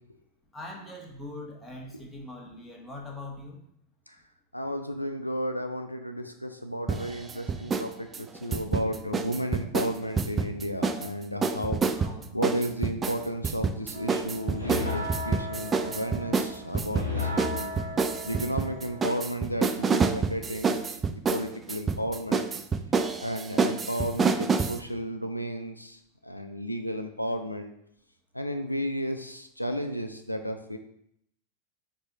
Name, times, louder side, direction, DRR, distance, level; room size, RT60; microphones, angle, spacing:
voice 1, 0.5-3.6 11.3-12.3, left 2 dB, 5° left, -2 dB, 1.1 m, -42 dB
voice 2, 4.5-11.8 12.3-17.7 18.2-22.5 23.2-27.7 28.3-30.8, equal, 90° left, 6 dB, 0.3 m, -33 dB
sound 1, 6.9-7.9 8.1-11.1 11.4-24.8, right 5 dB, 20° right, 0.3 m, -28 dB
sound 2, 13.9-19.0, left 3 dB, 85° right, 0.9 m, -35 dB
4.6 x 2.7 x 3.9 m, 0.73 s
figure-of-eight pair, 90°, 0 cm